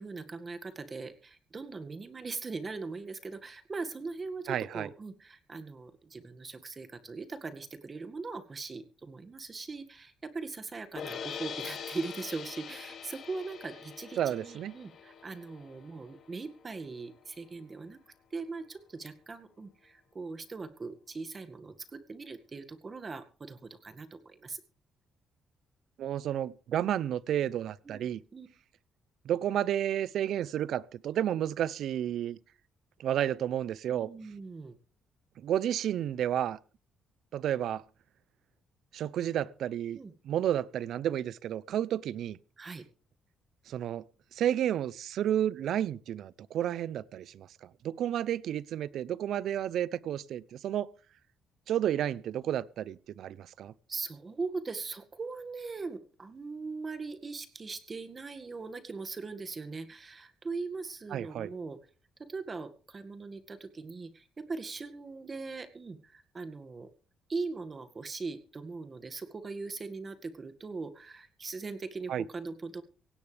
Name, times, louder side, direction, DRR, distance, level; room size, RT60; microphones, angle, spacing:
voice 1, 0.0-18.0 18.3-24.6 27.9-28.1 28.3-28.5 33.9-34.8 39.9-40.1 42.6-42.8 53.9-61.8 62.2-66.9 67.3-72.8, right 4 dB, 35° right, 1.9 m, -40 dB
voice 2, 4.5-4.9 14.2-14.7 26.0-28.2 29.2-32.4 33.0-34.1 35.4-36.6 37.3-37.8 38.9-40.0 40.2-42.4 43.7-44.0 44.3-50.9 51.7-53.7 61.1-61.5 72.1-72.2, right 10 dB, 75° right, 0.6 m, -31 dB
sound 1, 11.0-17.1, left 7 dB, 60° left, 3.1 m, -43 dB
17.5 x 16.5 x 3.4 m
cardioid pair, 90°, 0 cm